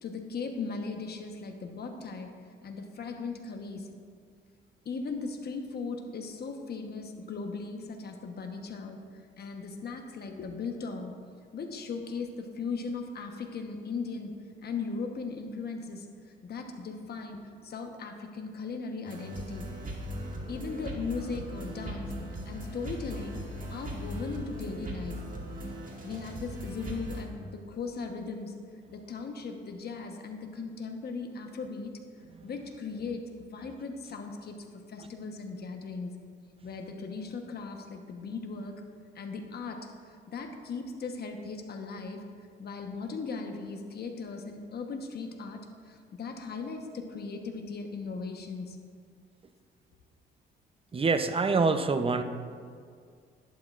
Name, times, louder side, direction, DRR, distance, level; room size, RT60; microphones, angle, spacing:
voice 1, 0.0-2.3 2.6-3.9 4.8-9.0 9.4-11.1 11.5-14.3 14.6-19.7 20.5-22.1 22.5-25.2 26.0-28.5 28.9-32.0 32.4-36.1 36.6-38.8 39.1-42.2 42.6-48.8, left 4 dB, 55° left, 4 dB, 1.1 m, -38 dB
sound 1, 19.1-27.2, equal, 45° right, 1.9 m, -39 dB
voice 2, 50.9-52.2, right 4 dB, 30° right, 8 dB, 0.6 m, -26 dB
11.5 x 11.0 x 2.5 m, 2.1 s
cardioid pair, 90°, 20 cm